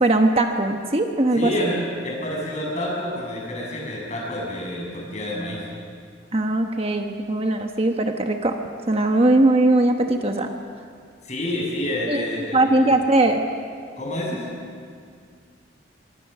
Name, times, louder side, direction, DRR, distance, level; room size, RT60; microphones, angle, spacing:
voice 1, 0.0-1.7 6.3-8.5 8.9-10.5 12.1-12.2 12.5-13.4, right 2 dB, 30° right, 4 dB, 1.1 m, -20 dB
voice 2, 1.4-5.6 11.2-13.0 14.0-14.5, left 1 dB, 35° left, -2 dB, 7.0 m, -28 dB
24.5 x 23.5 x 6.8 m, 2.2 s
head